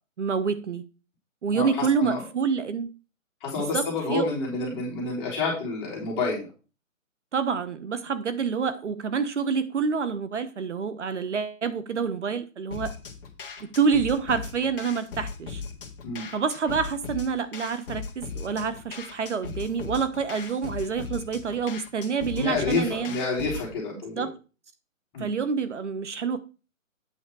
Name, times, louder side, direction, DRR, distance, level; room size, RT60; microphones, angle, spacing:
voice 1, 0.2-0.8 1.4-2.9 3.6-4.3 7.3-13.0 13.6-15.6 16.3-23.1 24.2-24.4 25.2-26.4, right 6 dB, 60° right, 0.9 m, -27 dB
voice 2, 1.5-2.2 3.4-6.5 16.0-16.2 22.3-24.3 25.1-25.3, left 3 dB, 20° left, 3.6 m, -29 dB
sound 1, 12.7-23.7, left 5 dB, 40° left, 1.8 m, -38 dB
8.7 x 6.3 x 4.6 m
hypercardioid pair, 165°, 41 cm